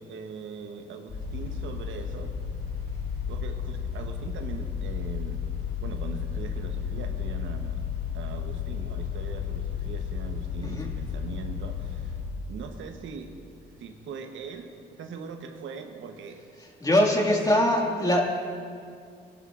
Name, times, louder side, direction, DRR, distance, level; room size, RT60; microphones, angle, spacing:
voice 1, 0.0-2.4 3.3-5.4 5.8-7.8 8.1-12.1 12.5-13.3 13.8-16.4 16.8-18.1, right 5 dB, 75° right, 5 dB, 1.0 m, -41 dB
sound 1, 1.1-12.2, left 7 dB, 65° left, 3.5 m, -33 dB
voice 2, 16.8-18.2, left 1 dB, 20° left, -1 dB, 2.0 m, -22 dB
19.5 x 11.5 x 2.5 m, 2.3 s
cardioid pair, 90°, 20 cm